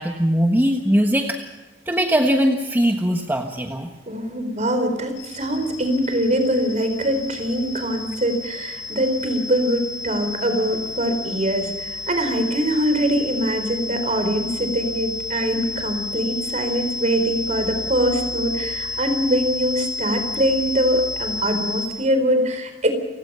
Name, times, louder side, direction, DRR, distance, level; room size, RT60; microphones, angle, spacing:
voice 1, 0.0-1.4 1.9-3.9 18.6-18.7, equal, 10° right, 3 dB, 1.4 m, -20 dB
voice 2, 4.1-22.9, equal, 40° right, 7 dB, 4.3 m, -23 dB
sound 1, 5.2-21.9, left 3 dB, 90° left, 6.9 m, -31 dB
29.5 x 17.0 x 5.7 m, 1.1 s
head